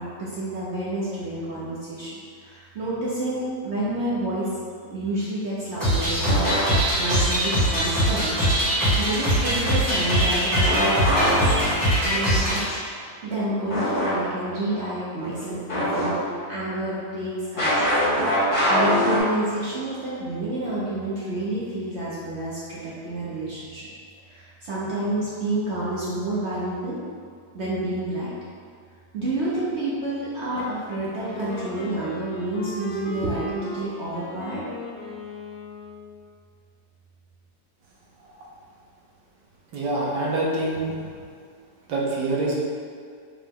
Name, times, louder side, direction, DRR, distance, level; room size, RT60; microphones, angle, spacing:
voice 1, 0.0-2.1 2.4-4.5 4.8-8.5 9.0-11.5 12.0-18.0 18.7-23.9 24.3-27.0 27.5-28.3 29.1-34.7, right 1 dB, 60° right, -9 dB, 0.7 m, -29 dB
sound 1, 5.8-12.6, equal, 15° right, 1.0 m, -22 dB
sound 2, 6.3-7.0 10.7-12.2 13.7-14.1 14.5-14.6 15.7-16.5 17.6-19.2, equal, 35° left, 0.5 m, -23 dB
Wind instrument woodwind instrument, 31.2-36.2, left 2 dB, 80° left, 1.2 m, -38 dB
voice 2, 39.7-40.9 41.9-42.6, right 2 dB, 85° right, -4 dB, 1.3 m, -25 dB
4.8 x 2.1 x 3.5 m, 2.1 s
omnidirectional pair, 1.9 m